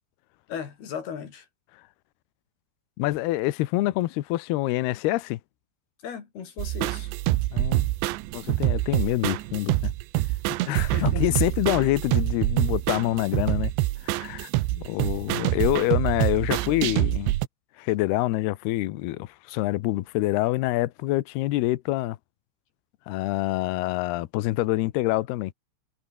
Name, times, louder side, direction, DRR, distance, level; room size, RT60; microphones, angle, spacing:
voice 1, 0.5-1.5 6.0-7.1 10.6-11.6 14.8-15.2, left 7 dB, 50° left, 5.3 m, -37 dB
voice 2, 3.0-5.4 7.5-7.9 8.3-9.9 10.6-13.7 14.0-17.3 17.8-22.2 23.1-25.5, left 17 dB, 85° left, 2.3 m, -26 dB
sound 1, 6.6-17.5, right 18 dB, 75° right, 2.8 m, -26 dB
omnidirectional pair, 6.0 m